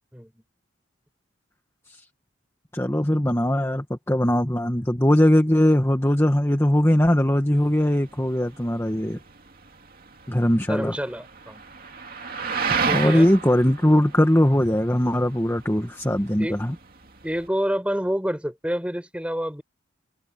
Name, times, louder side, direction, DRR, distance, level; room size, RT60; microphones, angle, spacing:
voice 1, 2.7-9.2 10.3-10.9 12.9-16.7, left 1 dB, 10° left, 1.5 m, -20 dB
sound 1, 7.6-17.5, right 5 dB, 45° right, 2.5 m, -33 dB
voice 2, 10.7-11.6 12.9-13.3 16.4-16.6 17.2-19.6, equal, 5° right, 7.1 m, -28 dB
head